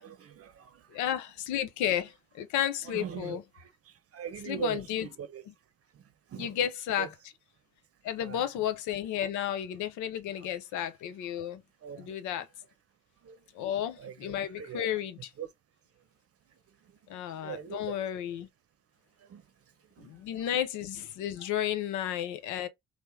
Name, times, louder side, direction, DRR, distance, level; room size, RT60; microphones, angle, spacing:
voice 1, 0.0-1.0 2.8-5.4 5.9-6.6 6.9-7.1 8.2-8.4 10.3-10.5 11.8-12.1 13.2-13.4 14.0-14.8 15.4-15.5 16.8-18.0 19.2-19.4 20.0-20.2 21.4-21.5, right 9 dB, 50° right, 0.7 m, -42 dB
voice 2, 0.9-3.4 4.5-5.1 6.4-7.1 8.0-11.6 12.0-12.5 13.5-15.3 17.1-18.5 20.0-22.7, left 10 dB, 70° left, 0.6 m, -32 dB
3.0 x 2.1 x 3.4 m
hypercardioid pair, 45°, 31 cm